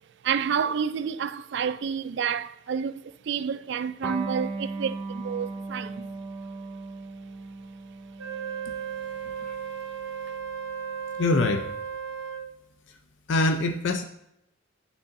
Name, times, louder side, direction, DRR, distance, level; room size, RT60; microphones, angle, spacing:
voice 1, 0.2-6.1 10.3-10.4, right 7 dB, 55° right, 0.3 m, -29 dB
Electric guitar, 4.0-11.2, right 3 dB, 5° left, 1.7 m, -38 dB
Wind instrument woodwind instrument, 8.2-12.6, right 7 dB, 75° right, 0.8 m, -35 dB
voice 2, 11.2-11.7 13.3-14.0, left 2 dB, 60° left, 0.5 m, -23 dB
9.3 x 6.7 x 2.6 m
head